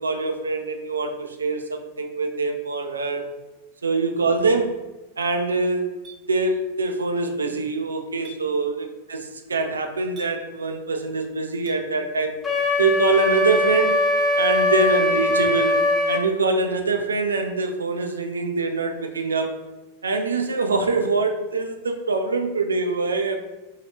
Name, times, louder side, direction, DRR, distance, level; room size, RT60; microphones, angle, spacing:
voice 1, 0.0-3.2 3.8-4.7 5.2-5.9 6.3-8.8 9.1-9.2 9.5-12.4 12.8-14.0 14.4-19.6 20.0-23.4, right 3 dB, 75° right, 5 dB, 0.3 m, -24 dB
Chink clink, 6.0-6.2 8.2-8.4 10.2-10.3 11.7-11.8, right 1 dB, 35° right, 0.7 m, -43 dB
Wind instrument woodwind instrument, 12.4-16.2, left 2 dB, 20° left, 0.5 m, -21 dB
2.7 x 2.3 x 3.2 m, 1.1 s
figure-of-eight pair, 90°, 0 cm